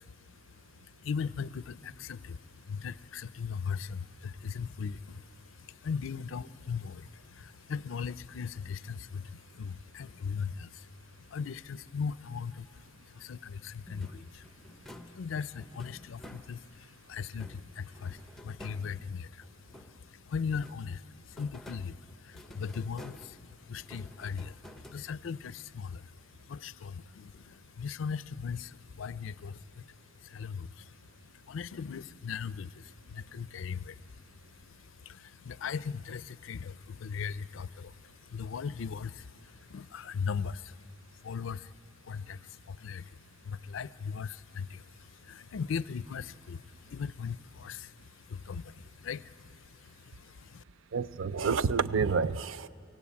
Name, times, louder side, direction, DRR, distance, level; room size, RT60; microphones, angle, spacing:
voice 1, 0.0-50.6, left 6 dB, 75° left, 18 dB, 0.4 m, -39 dB
sound 1, 13.9-16.9 17.3-20.2 20.5-25.5, left 1 dB, ahead, 0.7 m, -52 dB
voice 2, 50.9-52.7, right 5 dB, 85° right, 15 dB, 0.6 m, -29 dB
23.5 x 17.0 x 8.6 m, 2.6 s
head